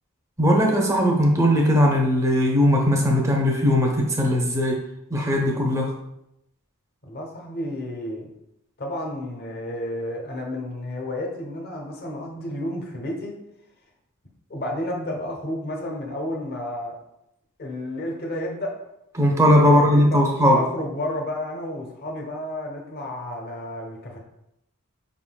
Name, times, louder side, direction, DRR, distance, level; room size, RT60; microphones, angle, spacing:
voice 1, 0.4-4.8 5.1-5.9 19.1-20.6, equal, 15° right, 0 dB, 0.7 m, -19 dB
voice 2, 7.0-8.3 8.8-13.3 14.5-16.9 17.6-18.8 19.6-20.2 20.5-24.2, left 1 dB, 45° left, 0 dB, 0.9 m, -31 dB
5.5 x 3.7 x 2.3 m, 0.83 s
head